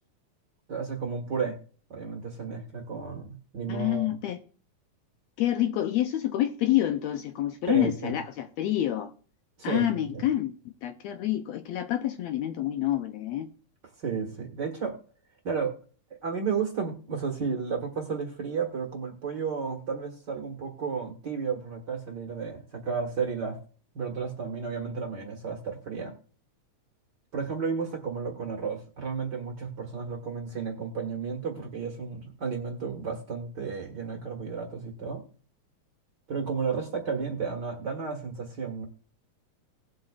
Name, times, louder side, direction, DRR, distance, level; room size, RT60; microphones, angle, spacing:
voice 1, 0.7-1.6 1.9-4.1 7.7-8.2 9.6-10.3 14.0-15.0 15.4-15.7 16.2-23.6 23.9-26.1 27.3-35.2 36.3-38.8, right 5 dB, 45° right, 1.7 m, -32 dB
voice 2, 3.7-4.4 5.4-9.1 9.6-13.5, left 13 dB, 75° left, 1.7 m, -28 dB
19.0 x 7.7 x 2.4 m
omnidirectional pair, 3.5 m